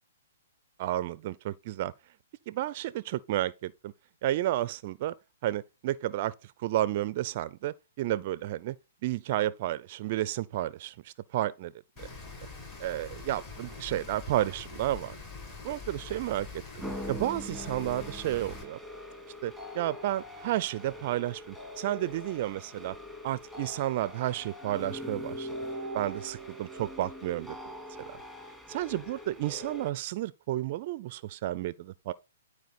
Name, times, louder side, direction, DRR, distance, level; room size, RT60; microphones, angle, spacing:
voice 1, 0.8-1.9 2.5-3.9 4.2-5.1 5.4-6.3 6.6-8.8 9.0-11.7 12.0-12.1 12.8-15.2 15.6-16.5 17.1-18.8 19.4-23.0 23.2-25.5 25.9-27.5 28.7-32.1, right 14 dB, 45° right, 0.4 m, -31 dB
Rain, 12.0-18.6, left 4 dB, 30° left, 6.6 m, -44 dB
sound 1, 16.8-29.9, equal, 5° left, 2.4 m, -42 dB
12.0 x 4.8 x 4.1 m
hypercardioid pair, 130°, 0 cm